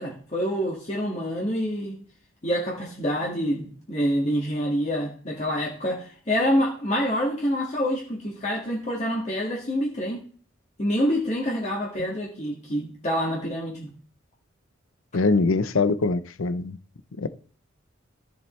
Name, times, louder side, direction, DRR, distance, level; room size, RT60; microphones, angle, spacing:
voice 1, 0.0-2.0 2.4-10.2 10.8-13.9, equal, 35° left, 1.9 m, -27 dB
voice 2, 15.1-16.8 17.2-17.3, left 3 dB, 85° left, 0.7 m, -23 dB
14.0 x 7.2 x 3.2 m
head